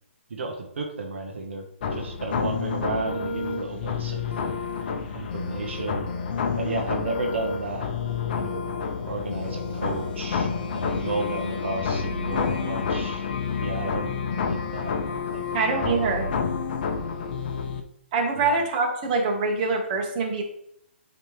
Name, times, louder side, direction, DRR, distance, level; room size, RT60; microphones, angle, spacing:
voice 1, 0.3-1.6 1.9-4.3 5.1-6.1 6.6-7.9 8.4-8.7 9.1-13.3 13.6-14.9 15.3-15.4 15.7-16.1 18.4-18.5, right 3 dB, 70° right, 2 dB, 1.1 m, -32 dB
sound 1, 1.8-17.8, left 5 dB, 45° left, 0.7 m, -29 dB
voice 2, 15.5-16.3 18.1-20.4, right 4 dB, 35° right, 1 dB, 1.4 m, -24 dB
9.1 x 3.4 x 3.3 m, 0.73 s
hypercardioid pair, 145°, 7 cm